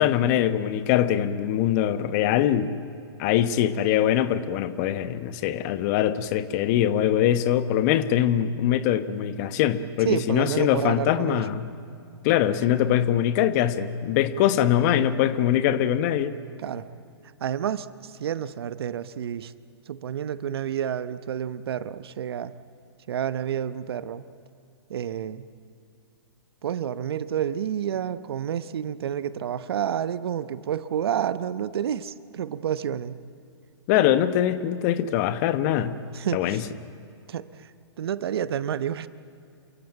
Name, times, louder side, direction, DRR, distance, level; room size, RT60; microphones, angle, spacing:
voice 1, 0.0-2.7 3.2-11.7 12.2-16.4 33.9-36.0 36.3-36.6, left 11 dB, 40° left, 11 dB, 1.1 m, -23 dB
voice 2, 10.0-11.5 16.6-16.9 17.4-19.5 19.9-22.5 23.1-24.2 24.9-25.4 26.6-33.2 36.1-36.7 37.3-37.7 38.0-39.1, right 9 dB, 65° right, 14 dB, 0.9 m, -29 dB
28.0 x 15.0 x 9.2 m, 2.6 s
hypercardioid pair, 125°, 14 cm